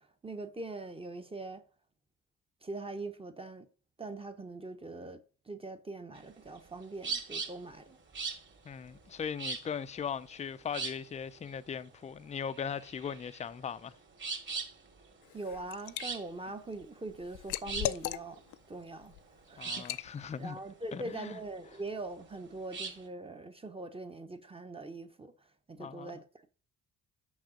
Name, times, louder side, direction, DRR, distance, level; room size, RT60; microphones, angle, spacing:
voice 1, 0.0-1.6 2.6-3.7 4.0-5.2 5.5-8.0 15.3-18.4 18.7-19.1 19.5-20.0 20.4-25.3 25.7-26.2, right 2 dB, 20° right, 0.8 m, -42 dB
sound 1, 6.2-23.1, right 5 dB, 40° right, 2.1 m, -41 dB
voice 2, 8.6-13.9 19.6-20.6 20.9-21.4 25.8-26.2, left 7 dB, 25° left, 0.4 m, -39 dB
Liquid, 15.2-16.1 16.5-18.6 19.0-19.2 19.8-20.1, left 14 dB, 85° left, 0.5 m, -37 dB
6.4 x 5.4 x 5.0 m
cardioid pair, 90°, 30 cm